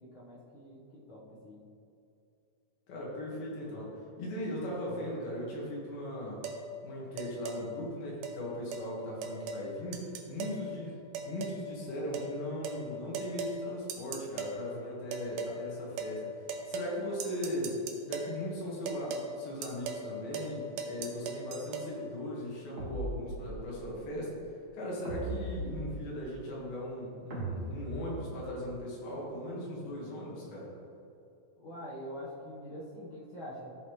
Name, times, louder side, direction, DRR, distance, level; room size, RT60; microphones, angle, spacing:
voice 1, 0.0-1.7 31.6-33.8, equal, 55° left, -7 dB, 1.4 m, -45 dB
voice 2, 2.9-6.4 6.8-16.3 16.7-24.4 24.7-30.7, equal, 85° left, -4 dB, 3.7 m, -38 dB
sound 1, 6.4-6.6 7.2-7.6 8.2-8.4 8.7-8.9 9.2-9.7 9.9-10.6 11.1-11.6 12.1-12.3 12.6-12.8 13.1-13.6 13.9-14.6 15.1-15.6 16.0-16.2 16.5-16.9 17.2-18.3 18.9-19.3 19.6-20.1 20.3-20.5 20.8-21.9, right 5 dB, 75° right, 2.0 m, -38 dB
sound 2, 22.8-23.8 25.0-26.3 27.3-28.6, right 1 dB, 35° right, 1.3 m, -39 dB
14.5 x 5.4 x 3.2 m, 2.6 s
omnidirectional pair, 4.2 m